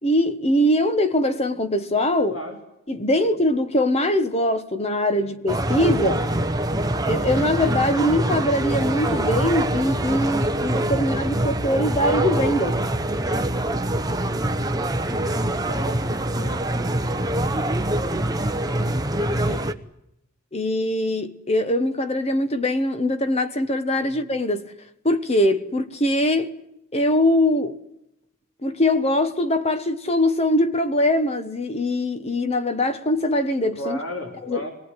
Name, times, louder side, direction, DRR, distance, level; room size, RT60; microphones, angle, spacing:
voice 1, 0.0-2.3 2.9-6.3 7.1-12.8 20.5-24.7 25.0-26.5 26.9-27.8 28.6-34.0 34.4-34.6, left 1 dB, 30° left, 1.2 m, -22 dB
voice 2, 2.3-2.6 3.1-3.3 5.2-5.3 15.6-16.1 16.4-16.6 17.4-17.7 19.3-19.7 24.0-24.2 33.8-34.7, equal, 80° left, 3.7 m, -35 dB
sound 1, 5.5-19.7, right 1 dB, 20° right, 1.0 m, -24 dB
25.0 x 19.0 x 10.0 m
head